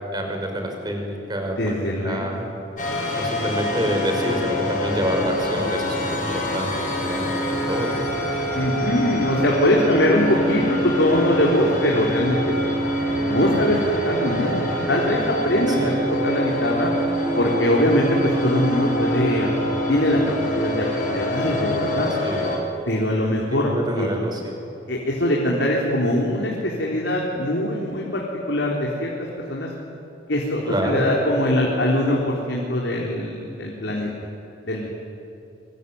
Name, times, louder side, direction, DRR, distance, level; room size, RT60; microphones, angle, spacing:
voice 1, 0.1-1.7 2.0-2.5 3.2-7.9 15.7-16.0 22.2-22.5 23.5-24.5 30.7-31.0, equal, 25° right, 2 dB, 5.7 m, -27 dB
voice 2, 1.6-2.4 8.5-14.6 14.9-15.9 16.2-16.9 17.4-19.5 19.9-22.1 22.9-23.7 24.0-24.1 24.9-29.1 29.5-29.7 30.3-34.1 34.6-34.9, left 1 dB, 90° left, -3 dB, 4.0 m, -22 dB
sound 1, 2.8-22.6, equal, 45° left, 6.9 m, -25 dB
25.5 x 24.0 x 9.6 m, 2.9 s
head